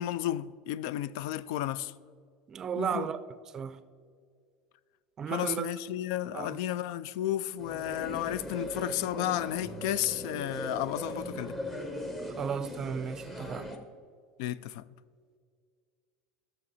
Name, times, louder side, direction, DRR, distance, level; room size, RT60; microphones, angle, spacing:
voice 1, 0.0-1.9 2.8-3.1 5.3-11.6 14.4-14.8, left 12 dB, 75° left, 0.3 m, -33 dB
voice 2, 2.5-3.2 3.5-3.8 5.2-5.7 6.3-6.6 12.4-13.7, right 7 dB, 25° right, 0.4 m, -34 dB
sound 1, 7.6-13.8, equal, 15° left, 0.9 m, -39 dB
13.5 x 6.9 x 4.1 m
supercardioid pair, 145°, 2 cm